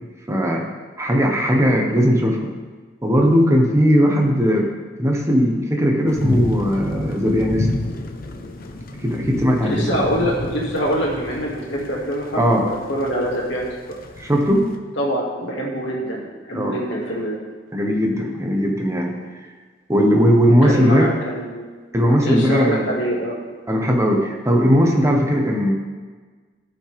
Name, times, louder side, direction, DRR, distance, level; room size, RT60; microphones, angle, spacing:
voice 1, 0.3-0.7 1.0-2.5 3.0-4.7 5.0-7.7 9.0-10.0 12.4-12.7 14.2-14.7 16.5-16.8 17.7-19.2 19.9-21.1 21.9-22.9 23.7-25.7, equal, 15° right, 0 dB, 1.1 m, -18 dB
sound 1, 6.1-14.8, left 1 dB, 50° left, 0.7 m, -30 dB
voice 2, 9.6-13.7 15.0-17.4 20.6-21.6 22.2-23.4, equal, 70° left, -3 dB, 2.2 m, -24 dB
14.5 x 5.7 x 3.5 m, 1.4 s
head